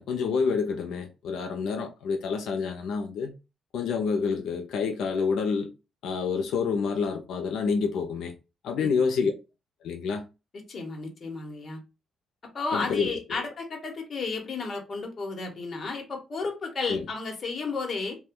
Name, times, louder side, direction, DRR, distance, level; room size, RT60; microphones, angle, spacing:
voice 1, 0.0-3.4 3.7-5.7 6.0-8.3 8.6-9.3 9.8-10.3 12.7-13.4 16.9-17.0, left 5 dB, 80° left, 0.5 m, -28 dB
voice 2, 10.5-11.8 12.5-18.2, left 4 dB, 35° left, 0.9 m, -33 dB
2.8 x 2.1 x 3.5 m
cardioid pair, 140°, 0 cm